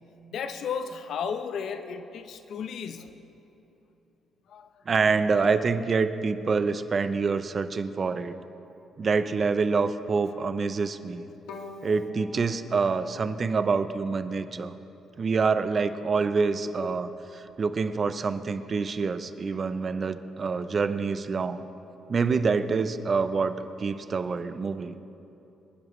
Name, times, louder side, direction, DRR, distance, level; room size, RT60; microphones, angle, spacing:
voice 1, 0.3-3.1 4.5-4.7, left 6 dB, 70° left, 9 dB, 0.8 m, -34 dB
voice 2, 4.9-8.3 9.0-11.3 11.8-14.7 15.2-21.6 22.1-25.0, right 4 dB, 40° right, 11 dB, 0.7 m, -26 dB
Bowed string instrument, 11.5-14.5, left 4 dB, 90° left, 1.4 m, -47 dB
26.0 x 11.0 x 3.2 m, 3.0 s
cardioid pair, 90°, 0 cm